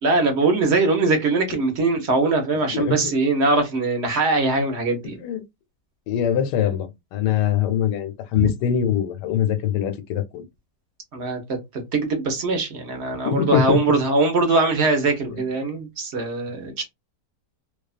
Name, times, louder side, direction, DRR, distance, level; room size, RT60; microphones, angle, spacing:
voice 1, 0.0-5.2 8.4-8.5 11.1-16.8, right 3 dB, 55° right, 0.8 m, -22 dB
voice 2, 6.1-10.4 13.2-13.8 15.3-15.4, left 9 dB, 90° left, 1.2 m, -23 dB
2.7 x 2.2 x 2.4 m
omnidirectional pair, 1.8 m